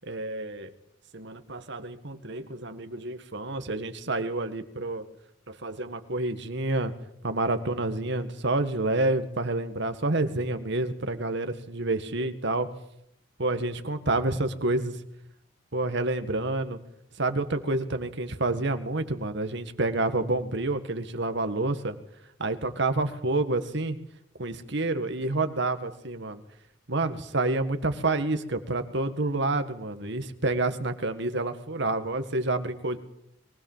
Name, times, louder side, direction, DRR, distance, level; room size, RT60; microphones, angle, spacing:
voice 1, 0.0-0.7 1.1-5.0 5.5-6.9 7.2-12.7 13.4-15.0 15.7-16.8 17.2-22.0 22.4-24.0 24.4-26.4 26.9-33.0, right 2 dB, 65° right, 8 dB, 1.8 m, -28 dB
23.0 x 17.0 x 7.4 m, 0.76 s
head